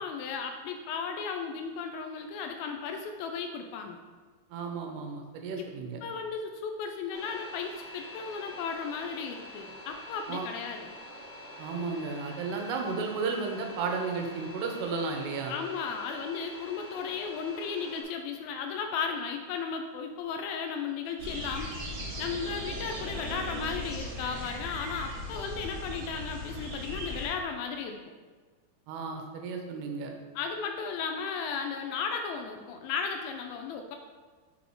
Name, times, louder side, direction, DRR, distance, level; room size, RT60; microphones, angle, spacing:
voice 1, 0.0-4.0 5.6-5.7 6.0-10.9 15.5-28.0 30.4-34.0, left 5 dB, 85° left, 4 dB, 2.1 m, -35 dB
voice 2, 4.5-6.0 10.3-10.5 11.6-15.5 28.9-30.1, right 4 dB, 90° right, 3 dB, 2.7 m, -33 dB
sound 1, 7.1-18.0, left 1 dB, 65° right, 2.4 m, -46 dB
sound 2, 21.2-27.3, equal, 45° right, 1.4 m, -38 dB
6.0 x 4.2 x 4.5 m, 1.4 s
omnidirectional pair, 4.7 m